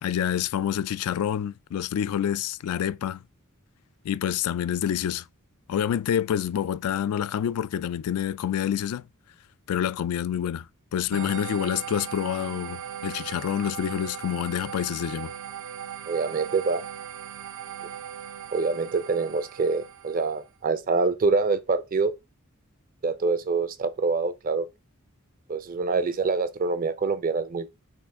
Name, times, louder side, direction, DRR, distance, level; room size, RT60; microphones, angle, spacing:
voice 1, 0.0-3.2 4.0-5.3 5.7-9.0 9.7-10.7 10.9-15.3, left 9 dB, 85° left, 0.3 m, -27 dB
sound 1, 11.1-20.5, right 9 dB, 75° right, 0.7 m, -38 dB
voice 2, 16.1-16.8 18.5-22.1 23.0-24.7 25.5-27.7, right 4 dB, 40° right, 0.4 m, -25 dB
5.5 x 2.5 x 3.6 m
head